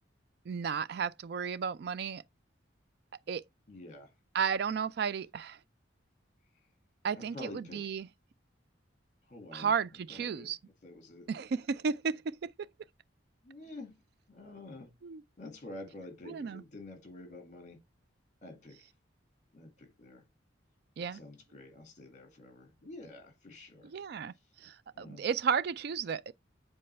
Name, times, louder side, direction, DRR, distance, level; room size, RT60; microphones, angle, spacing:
voice 1, 0.5-2.2 3.3-3.4 4.3-5.6 7.0-8.1 9.5-10.6 11.3-12.5 15.0-15.2 16.3-16.6 21.0-21.2 23.8-24.3 24.6-26.3, right 6 dB, 55° right, 0.3 m, -33 dB
voice 2, 3.7-4.1 7.1-7.9 9.3-9.7 10.1-10.5 10.8-11.3 13.4-14.0 14.3-14.9 15.4-17.8 18.4-18.9 19.5-20.2 21.1-23.9 24.9-25.2, left 2 dB, 40° left, 2.0 m, -48 dB
7.7 x 4.3 x 3.3 m
head